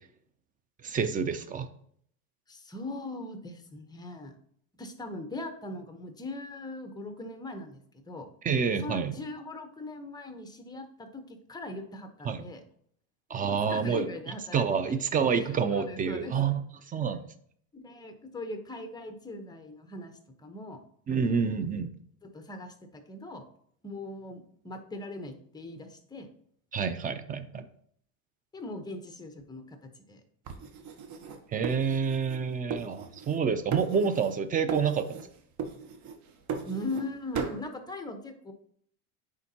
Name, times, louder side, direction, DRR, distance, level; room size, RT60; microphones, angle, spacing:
voice 1, 0.8-1.7 8.4-9.1 12.2-12.4 13.3-14.1 14.5-16.6 16.9-17.2 21.1-21.9 26.7-27.7 31.5-35.2, right 6 dB, 20° right, 10 dB, 0.4 m, -28 dB
voice 2, 2.5-4.3 4.8-8.3 8.8-12.6 13.7-15.0 15.3-16.6 17.7-20.1 20.4-20.8 21.1-21.6 22.2-23.4 23.8-26.3 28.5-30.2 36.6-38.5, left 2 dB, 10° left, 7 dB, 0.9 m, -40 dB
sound 1, 30.5-32.4 32.7-33.4 33.7-34.4 34.7-35.3 35.6-37.1 37.3-37.6, right 6 dB, 40° right, 0.9 m, -37 dB
9.6 x 3.7 x 2.8 m, 0.64 s
supercardioid pair, 110°, 43 cm